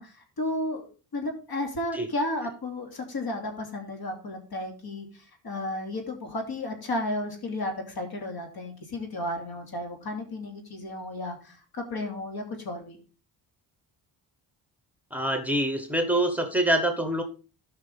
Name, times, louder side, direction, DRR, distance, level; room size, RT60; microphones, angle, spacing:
voice 1, 0.0-13.0, left 1 dB, 55° left, 3 dB, 2.9 m, -33 dB
voice 2, 15.1-17.2, right 1 dB, 5° right, 6 dB, 1.3 m, -25 dB
13.5 x 5.7 x 3.6 m, 0.36 s
cardioid pair, 80°, 44 cm